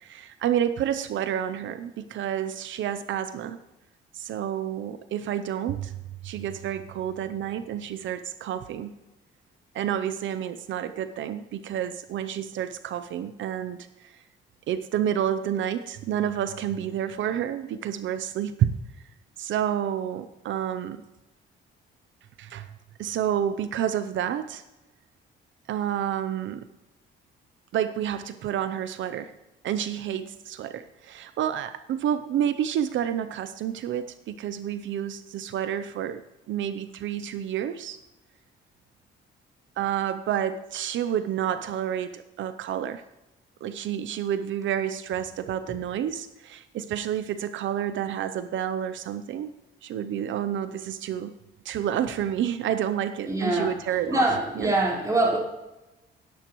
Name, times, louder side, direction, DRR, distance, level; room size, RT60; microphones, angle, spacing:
voice 1, 0.0-3.6 4.1-6.0 6.2-9.0 9.7-14.2 14.7-18.7 19.4-21.0 22.4-22.7 23.0-24.6 25.7-26.6 27.7-29.3 29.6-36.2 36.5-38.0 39.8-43.0 43.6-49.5 49.8-51.3 51.6-54.3 54.6-54.7, right 10 dB, 75° right, 11 dB, 0.6 m, -29 dB
voice 2, 53.3-53.7 54.1-55.4, right 2 dB, 15° right, -5 dB, 4.3 m, -24 dB
17.0 x 10.0 x 3.1 m, 1.0 s
cardioid pair, 90°, 20 cm